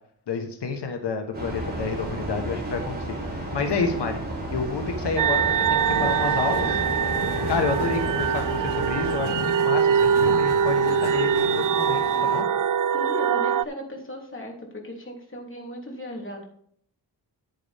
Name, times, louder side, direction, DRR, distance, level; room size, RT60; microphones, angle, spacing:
voice 1, 0.3-4.2 4.5-5.4 5.7-6.8 7.5-12.4, left 5 dB, 90° left, 4 dB, 1.4 m, -29 dB
Train, 1.3-9.2, right 1 dB, 25° right, 4.9 m, -32 dB
sound 1, 5.2-13.6, right 7 dB, 55° right, 0.4 m, -23 dB
sound 2, 5.8-12.4, left 8 dB, 70° left, 0.8 m, -36 dB
voice 2, 12.9-16.4, equal, 30° left, 0 dB, 3.4 m, -37 dB
9.8 x 9.8 x 3.6 m, 0.62 s
wide cardioid pair, 100°, 40 cm